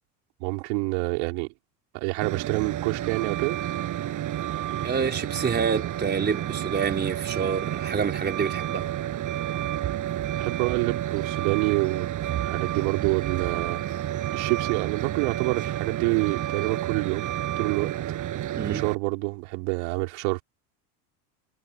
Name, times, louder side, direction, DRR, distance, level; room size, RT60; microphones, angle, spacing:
voice 1, 0.4-1.5 1.9-3.6 10.4-12.1 12.4-13.8 14.3-17.3 17.6-17.9 18.6-20.4, right 31 dB, 65° right, 4.8 m, -27 dB
Truck, 2.2-18.9, right 12 dB, 40° right, 6.9 m, -30 dB
voice 2, 4.8-8.9 18.6-18.8, right 6 dB, 20° right, 4.1 m, -27 dB
supercardioid pair, 120°, 47 cm